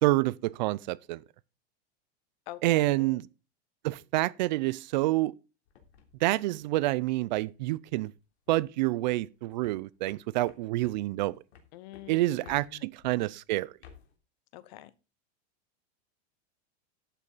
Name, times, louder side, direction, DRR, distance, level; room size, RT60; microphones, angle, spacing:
voice 1, 0.0-1.2 2.6-3.2 3.8-5.3 6.2-8.1 8.5-11.4 12.1-13.7, right 18 dB, 45° right, 0.5 m, -28 dB
voice 2, 2.5-3.2 11.7-12.9 14.5-14.9, left 15 dB, 45° left, 1.0 m, -46 dB
sound 1, 5.7-7.5 7.9-8.2 8.5-8.8 9.1-13.2 13.6-14.1, left 7 dB, 90° left, 3.3 m, -55 dB
12.0 x 8.5 x 4.0 m
supercardioid pair, 165°, 32 cm